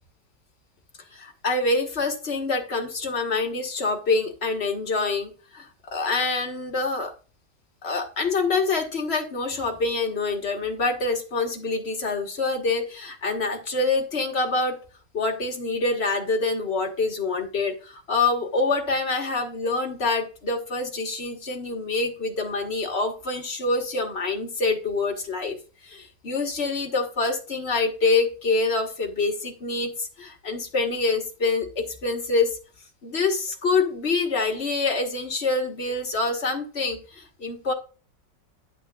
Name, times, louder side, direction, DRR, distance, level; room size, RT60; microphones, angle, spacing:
voice 1, 1.1-7.1 7.8-14.8 15.1-25.6 25.8-32.6 33.0-37.7, left 3 dB, 40° left, 3 dB, 1.5 m, -26 dB
10.5 x 8.1 x 2.3 m, 0.36 s
omnidirectional pair, 1.9 m